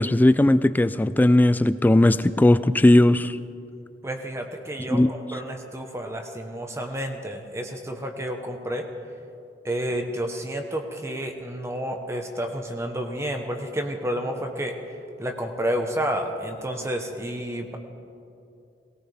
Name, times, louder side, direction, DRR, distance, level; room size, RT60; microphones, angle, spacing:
voice 1, 0.0-3.4 4.9-5.1, left 1 dB, 10° left, 14 dB, 0.3 m, -18 dB
voice 2, 4.0-8.9 9.6-14.8 15.2-17.8, equal, 15° right, 4 dB, 1.0 m, -30 dB
18.5 x 18.0 x 3.4 m, 2.6 s
head